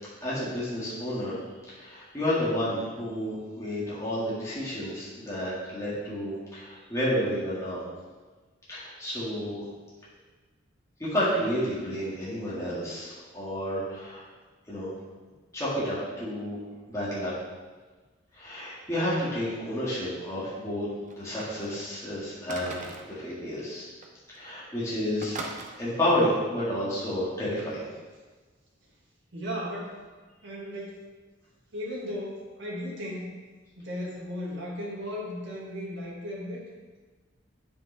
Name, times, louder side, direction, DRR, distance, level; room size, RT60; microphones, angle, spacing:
voice 1, 0.2-1.4 1.7-7.8 8.7-9.6 11.0-14.2 14.7-14.9 15.5-16.6 16.9-17.3 18.4-20.9 21.2-23.9 24.3-25.4 25.8-27.9, equal, 15° left, -9 dB, 2.0 m, -30 dB
sound 1, 21.1-21.8 22.5-23.2 24.0-24.1 24.3-24.6 25.2-25.7 27.6-27.7, right 3 dB, 40° right, 0.8 m, -40 dB
voice 2, 29.3-30.0 30.4-31.0 31.7-33.3 33.8-36.7, equal, 65° right, -4 dB, 2.0 m, -36 dB
8.6 x 5.5 x 3.4 m, 1.3 s
head